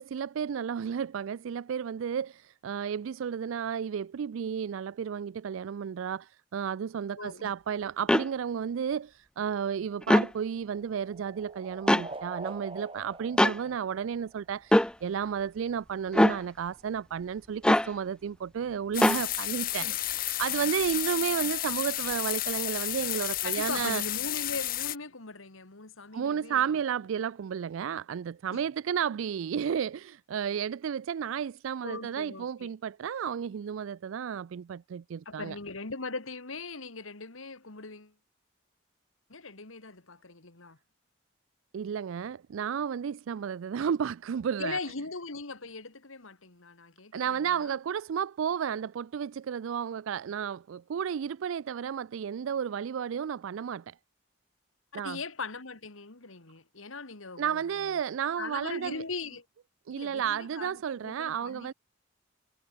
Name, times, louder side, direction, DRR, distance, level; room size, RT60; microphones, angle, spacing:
voice 1, 0.0-24.0 26.1-35.6 41.7-44.8 47.1-53.9 54.9-55.2 57.4-59.0 59.9-61.7, right 7 dB, 80° right, 0.4 m, -32 dB
voice 2, 7.2-7.5 19.8-20.0 23.4-26.6 28.5-28.6 31.8-32.7 35.3-38.1 39.3-40.8 44.6-47.8 54.9-58.0 58.4-59.4 59.9-61.7, left 3 dB, 85° left, 2.4 m, -40 dB
sound 1, 8.1-8.3 10.0-10.3 11.9-12.1 13.4-13.6 14.7-14.9 16.1-16.4 17.6-17.9 19.0-19.2, left 1 dB, 5° left, 0.3 m, -21 dB
sound 2, 9.9-14.7, right 2 dB, 25° right, 2.7 m, -45 dB
sound 3, 18.9-24.9, left 14 dB, 45° left, 0.9 m, -32 dB
head